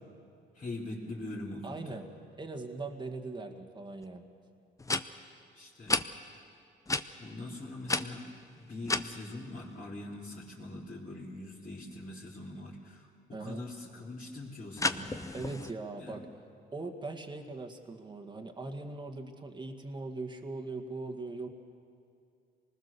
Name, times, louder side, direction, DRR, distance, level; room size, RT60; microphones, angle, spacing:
voice 1, 0.5-2.0 5.5-6.0 6.9-8.3 8.6-13.1 13.4-15.2 16.0-16.2, left 2 dB, 40° left, -7 dB, 3.6 m, -42 dB
voice 2, 1.6-2.1 2.4-4.3 13.3-13.7 15.3-16.2 16.7-21.5, right 3 dB, 25° right, 3 dB, 1.8 m, -40 dB
sound 1, 4.0-4.1 4.8-5.0 5.9-6.0 6.9-7.0 7.9-9.1 14.8-15.7, left 3 dB, 15° left, 0.8 m, -31 dB
25.5 x 20.0 x 6.9 m, 2.5 s
cardioid pair, 90°, 20 cm